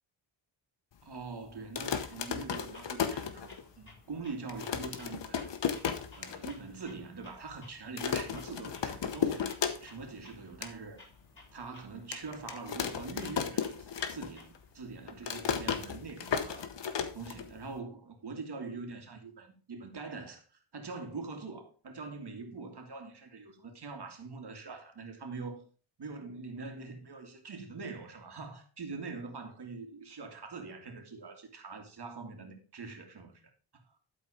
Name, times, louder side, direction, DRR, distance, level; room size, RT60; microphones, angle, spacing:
voice 1, 1.0-5.5 6.1-9.5 9.8-11.0 11.5-16.7 17.1-25.6 26.0-33.4 33.7-33.8, right 4 dB, 50° right, 2.4 m, -43 dB
sound 1, 1.6-3.9 4.2-4.3 4.5-6.5 6.9-7.0 7.2-7.6 8.0-10.1 10.4-10.7 11.2-11.3 12.1-14.6 14.8-17.8, left 7 dB, 60° left, 1.2 m, -34 dB
Clock, 2.7-14.7, left 2 dB, 25° left, 5.2 m, -58 dB
12.0 x 4.4 x 5.0 m
cardioid pair, 85°, 49 cm